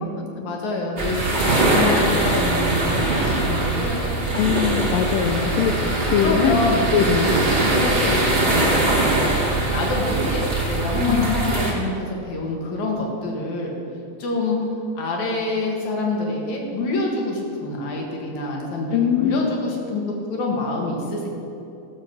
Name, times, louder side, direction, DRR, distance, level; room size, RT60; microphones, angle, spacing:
voice 1, 0.4-4.5 5.4-5.6 6.1-6.9 7.2-8.7 9.1-13.7 14.2-14.6 15.0-20.0 20.3-21.3, left 2 dB, 55° left, 0 dB, 2.8 m, -26 dB
sound 1, 1.0-11.7, right 2 dB, 35° right, 0.9 m, -21 dB
voice 2, 4.4-6.5 6.9-7.3 11.1-11.3 18.9-19.5, left 8 dB, 80° left, 5 dB, 2.0 m, -22 dB
15.5 x 7.2 x 6.0 m, 2.8 s
omnidirectional pair, 4.6 m